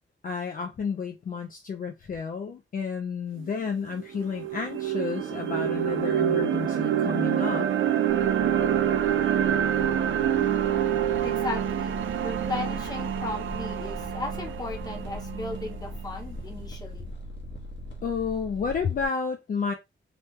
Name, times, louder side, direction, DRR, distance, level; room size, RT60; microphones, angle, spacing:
voice 1, 0.2-7.7 18.0-19.7, left 5 dB, 45° left, 0.4 m, -31 dB
sound 1, 3.4-3.5 3.9-16.0, right 10 dB, 90° right, 0.5 m, -26 dB
sound 2, 8.1-19.1, equal, 65° left, 1.0 m, -40 dB
voice 2, 11.2-17.1, left 3 dB, 20° left, 0.7 m, -36 dB
3.0 x 2.2 x 3.0 m
wide cardioid pair, 175°, 20 cm